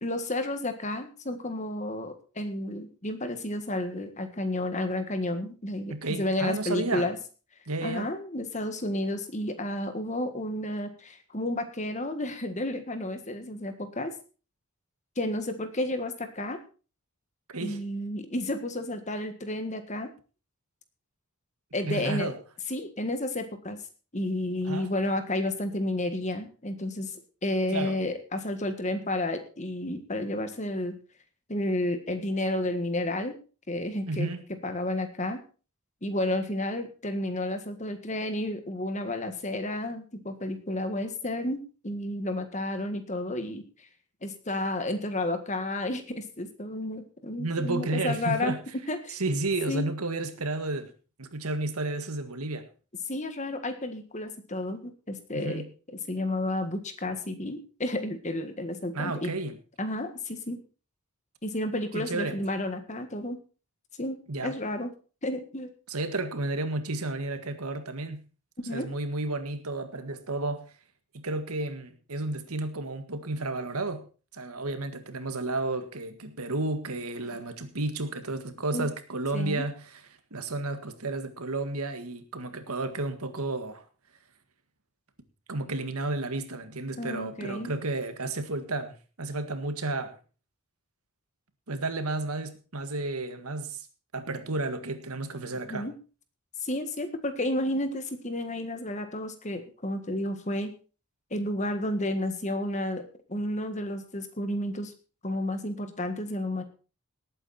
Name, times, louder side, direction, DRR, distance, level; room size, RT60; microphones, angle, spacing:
voice 1, 0.0-7.2 7.8-14.1 15.2-16.6 17.6-20.1 21.7-22.3 22.7-23.8 24.1-30.9 31.5-33.4 33.7-34.3 34.6-35.4 36.0-43.6 44.2-48.6 48.9-49.2 49.7-49.9 53.1-55.6 56.1-59.3 59.8-60.6 61.4-63.4 64.0-64.9 65.2-65.7 68.6-68.9 78.7-78.9 79.3-79.7 87.0-87.7 95.7-95.9 96.6-100.7 101.3-103.0 103.3-104.9 105.2-106.6, left 1 dB, 30° left, 8 dB, 1.6 m, -31 dB
voice 2, 5.9-7.1 7.7-8.1 17.5-17.8 21.9-22.4 24.7-24.9 27.7-28.0 34.1-34.4 47.4-48.6 49.1-50.9 51.2-52.7 55.3-55.7 58.9-59.6 61.9-62.4 64.3-64.5 65.9-68.2 68.7-70.7 71.1-74.1 74.3-79.7 80.3-83.8 85.5-90.2 91.7-93.9 94.1-95.9, right 2 dB, 90° right, 9 dB, 1.8 m, -32 dB
18.5 x 8.9 x 4.3 m, 0.36 s
head